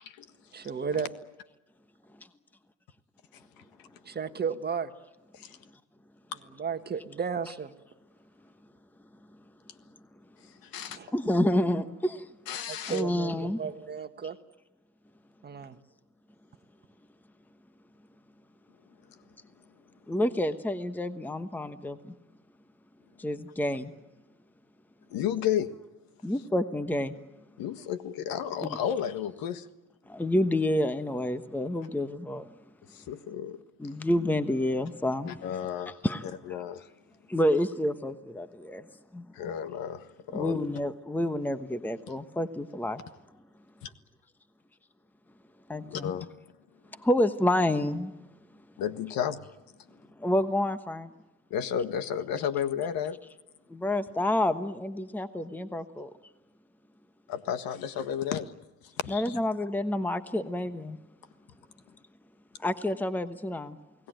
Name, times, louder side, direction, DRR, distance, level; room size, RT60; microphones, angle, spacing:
voice 1, 0.5-1.1 4.0-4.9 6.6-7.7 10.9-11.1 12.7-14.4 15.4-15.8, right 6 dB, 25° right, 8 dB, 1.5 m, -33 dB
voice 2, 11.1-12.2 12.9-13.6 20.1-22.1 23.2-23.9 26.2-27.1 28.6-28.8 30.1-32.4 33.8-35.4 36.0-36.3 37.3-38.8 39.1-39.2 40.3-43.0 45.7-46.1 47.0-48.1 50.2-51.1 53.7-56.1 59.1-61.0 62.6-63.8, left 1 dB, 5° left, 10 dB, 1.1 m, -28 dB
voice 3, 12.5-13.0 25.1-25.7 27.6-29.6 32.9-33.6 35.2-36.0 36.5-36.9 39.3-40.6 43.8-43.9 45.8-46.3 48.8-49.4 51.5-53.2 57.3-58.5 59.0-59.4, left 9 dB, 60° left, 11 dB, 1.7 m, -32 dB
29.0 x 18.5 x 9.2 m, 1.1 s
supercardioid pair, 105°, 39 cm